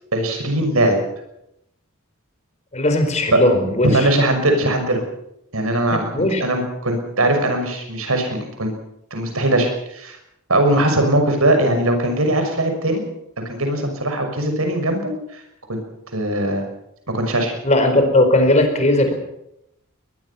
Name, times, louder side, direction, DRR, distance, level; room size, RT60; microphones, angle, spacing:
voice 1, 0.1-1.0 3.3-3.4 3.9-5.0 5.5-6.1 6.4-8.7 9.1-10.2 10.5-13.0 13.4-15.4 15.7-15.8 16.1-16.6 17.1-17.5, right 1 dB, 85° right, 5 dB, 6.2 m, -20 dB
voice 2, 2.7-4.1 5.9-6.4 17.6-19.1, left 1 dB, 35° left, 6 dB, 4.6 m, -17 dB
22.0 x 21.0 x 5.8 m, 0.79 s
head